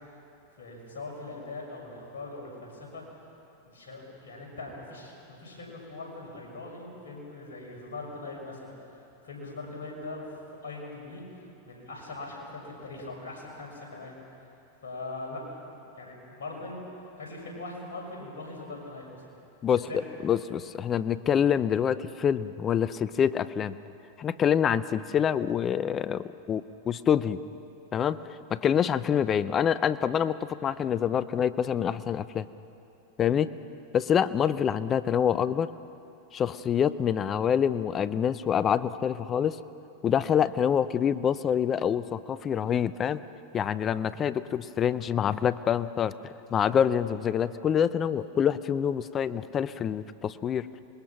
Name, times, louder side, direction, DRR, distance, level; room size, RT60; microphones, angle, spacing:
voice 1, 0.6-3.0 3.6-10.3 10.6-11.2 11.6-14.1 14.8-16.8 17.2-19.2 19.9-20.0 33.3-33.5, left 2 dB, 75° left, -1 dB, 6.4 m, -41 dB
voice 2, 19.6-23.8 24.2-27.4 27.9-32.5 33.2-33.5 33.9-35.7 36.3-39.6 40.0-43.2 43.5-50.8, left 8 dB, 30° left, 15 dB, 0.7 m, -26 dB
26.0 x 21.0 x 6.0 m, 2.8 s
hypercardioid pair, 95°, 0 cm